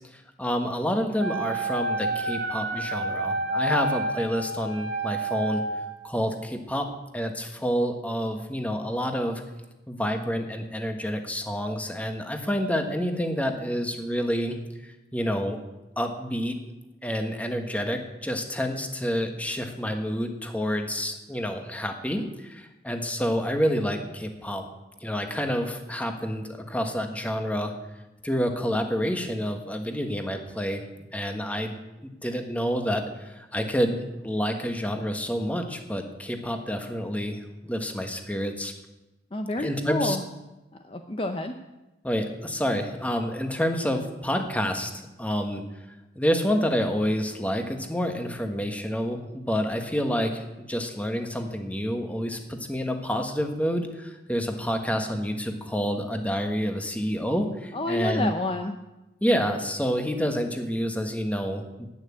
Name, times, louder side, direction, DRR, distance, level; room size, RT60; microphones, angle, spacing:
voice 1, 0.4-5.6 6.0-9.4 9.9-14.6 14.8-15.6 16.0-16.6 17.0-24.6 25.0-27.7 28.2-30.8 31.1-31.7 32.0-37.4 37.6-38.7 39.6-40.2 42.0-44.9 45.2-45.6 46.1-58.3 59.2-61.9, equal, 10° left, 5 dB, 1.3 m, -28 dB
Wind instrument woodwind instrument, 1.2-6.0, right 2 dB, 65° right, 2.1 m, -29 dB
voice 2, 39.3-40.2 40.8-41.5 57.7-58.8, left 2 dB, 30° left, 6 dB, 0.7 m, -29 dB
11.0 x 9.2 x 8.5 m, 1.0 s
head